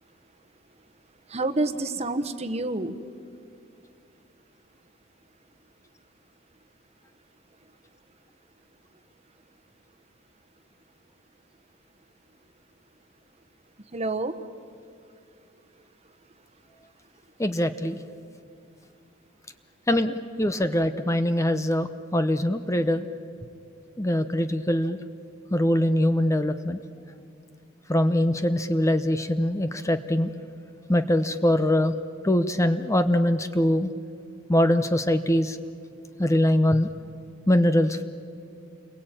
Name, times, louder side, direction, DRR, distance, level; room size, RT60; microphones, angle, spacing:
voice 1, 1.3-3.0 13.9-14.4, right 2 dB, 35° right, 8 dB, 1.1 m, -28 dB
voice 2, 17.4-18.0 19.9-23.0 24.0-25.0 25.5-26.8 27.9-30.3 30.9-32.0 32.2-33.9 34.5-35.6 36.2-36.9 37.5-38.0, left 1 dB, 15° left, 10 dB, 0.8 m, -23 dB
29.5 x 22.0 x 9.0 m, 2.5 s
head